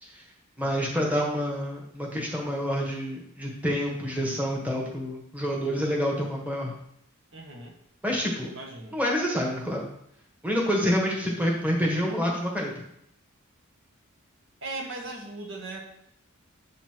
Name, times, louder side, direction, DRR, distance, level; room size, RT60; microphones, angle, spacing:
voice 1, 0.6-6.7 8.0-8.5 8.9-9.9 10.4-12.7, equal, 5° right, -2 dB, 1.4 m, -27 dB
voice 2, 7.3-7.7 8.4-9.0 14.6-15.9, right 2 dB, 60° right, 0 dB, 1.4 m, -38 dB
7.6 x 4.1 x 6.1 m, 0.74 s
head